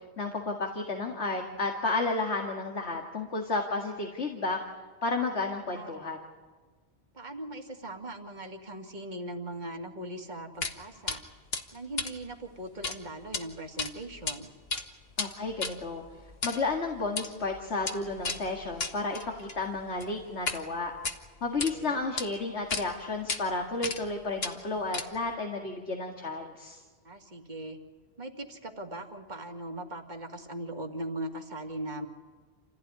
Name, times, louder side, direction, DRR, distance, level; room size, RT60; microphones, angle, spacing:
voice 1, 0.2-4.6 5.0-6.2 15.2-16.0 16.4-20.9 21.4-26.8, left 3 dB, 80° left, 2 dB, 2.3 m, -32 dB
voice 2, 5.7-6.1 7.1-11.2 11.7-14.5 21.7-22.1 27.0-27.8 28.2-32.1, right 1 dB, 45° right, 2 dB, 2.3 m, -40 dB
sound 1, 10.6-10.8 11.1-11.2 11.5-13.0 13.2-13.4 13.8-14.4 14.6-20.6 20.9-21.7 22.2-22.3 22.7-22.8 23.3-23.4 23.8-24.1 24.4-25.3, left 4 dB, 65° left, 1.8 m, -35 dB
28.5 x 16.0 x 9.7 m, 1.4 s
omnidirectional pair, 1.1 m